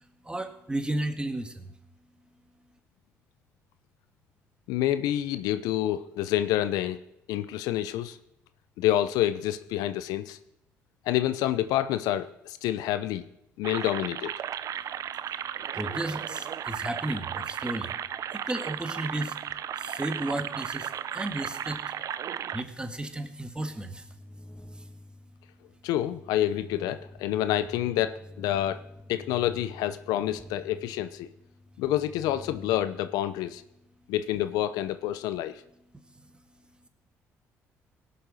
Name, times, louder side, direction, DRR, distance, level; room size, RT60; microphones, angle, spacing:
voice 1, 0.2-1.7 15.3-15.4 15.7-17.9 18.3-19.4 19.8-21.8 22.5-24.1 24.7-24.8 35.9-36.3, right 1 dB, 15° right, 7 dB, 1.8 m, -34 dB
voice 2, 4.7-7.0 7.3-8.2 8.8-10.4 11.1-13.2 13.6-14.3 25.8-28.8 29.1-31.3 31.8-33.6 34.1-35.6, left 13 dB, 80° left, 12 dB, 0.6 m, -28 dB
sound 1, 13.6-22.6, right 9 dB, 60° right, 0.6 m, -35 dB
sound 2, 23.3-33.9, left 1 dB, 10° left, 1.7 m, -48 dB
18.0 x 7.0 x 6.3 m, 0.82 s
supercardioid pair, 60°, 6 cm